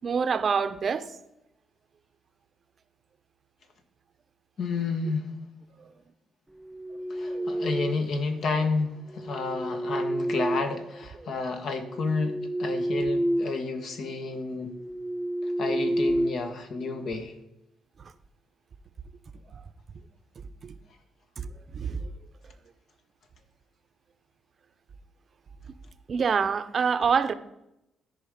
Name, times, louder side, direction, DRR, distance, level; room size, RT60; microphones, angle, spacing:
voice 1, 0.0-1.2 5.8-5.9 7.3-7.4 20.6-20.7 21.4-21.5 21.7-22.1 26.1-27.3, right 6 dB, 45° right, 0.6 m, -26 dB
voice 2, 4.6-5.3 7.1-14.7 15.4-17.3, left 4 dB, 65° left, 1.3 m, -31 dB
sound 1, 6.7-8.2 9.2-11.3 11.8-13.6 13.9-14.2 14.7-17.0, right 1 dB, 10° right, 0.3 m, -30 dB
13.0 x 5.0 x 5.1 m
cardioid pair, 90°, 0 cm